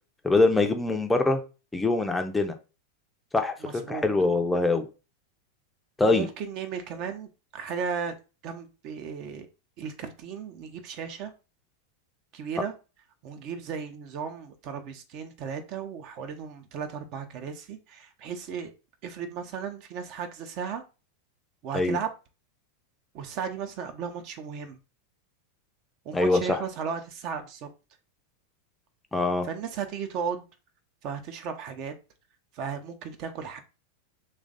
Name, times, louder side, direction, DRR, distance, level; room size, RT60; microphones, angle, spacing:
voice 1, 0.2-1.4 1.7-2.5 3.3-4.8 6.0-6.3 21.7-22.0 26.1-26.6 29.1-29.5, left 3 dB, 10° left, 0.5 m, -23 dB
voice 2, 3.6-4.1 6.0-8.2 8.4-9.5 9.8-11.3 12.3-12.7 13.2-18.7 19.0-20.8 21.6-22.1 23.1-24.8 26.0-27.7 29.4-30.5 31.0-31.9 32.5-33.6, right 7 dB, 40° right, 0.6 m, -35 dB
3.2 x 2.4 x 3.8 m
figure-of-eight pair, 90°, 0 cm